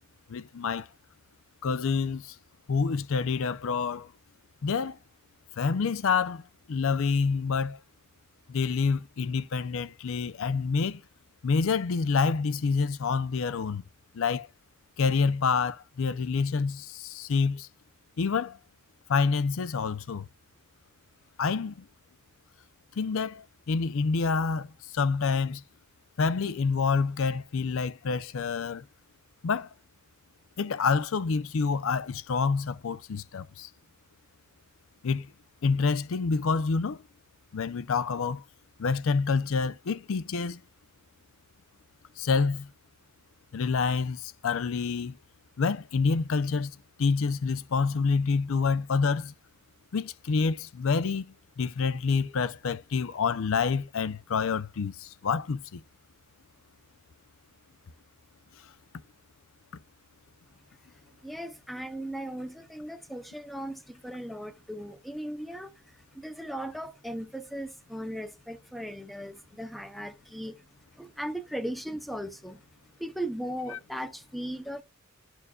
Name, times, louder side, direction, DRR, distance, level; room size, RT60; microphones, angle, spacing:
voice 1, 0.3-0.8 1.6-2.2 2.7-4.1 4.6-5.0 5.6-6.4 6.7-7.8 8.5-11.0 11.4-13.8 14.1-14.5 15.0-17.7 18.2-18.6 19.1-20.3 21.4-21.7 23.0-24.7 24.9-25.6 26.2-28.8 29.4-29.7 30.6-33.7 35.0-35.3 35.6-37.0 37.5-38.4 38.8-40.6 42.2-42.7 43.5-45.2 45.6-46.7 47.0-49.3 49.9-55.8 73.7-73.8, left 5 dB, 65° left, 0.5 m, -27 dB
voice 2, 61.2-70.6 71.0-72.6 73.0-74.8, equal, ahead, 0.7 m, -37 dB
12.0 x 4.5 x 2.3 m
head